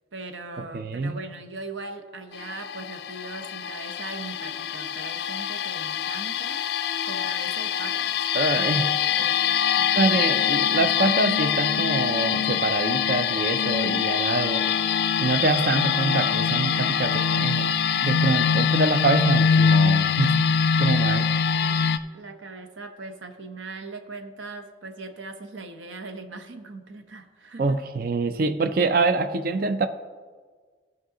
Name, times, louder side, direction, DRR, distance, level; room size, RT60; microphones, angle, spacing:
voice 1, 0.1-6.6 7.0-8.2 8.5-8.8 9.1-10.2 21.5-21.8 22.1-27.8, right 3 dB, 85° right, 6 dB, 0.9 m, -40 dB
voice 2, 0.7-1.2 8.3-8.9 9.9-14.6 15.2-17.7 18.0-21.3 27.6-29.9, right 3 dB, 50° right, 10 dB, 0.4 m, -25 dB
sound 1, 2.3-22.0, left 7 dB, 55° left, 0.3 m, -24 dB
15.0 x 5.5 x 3.8 m, 1.5 s
head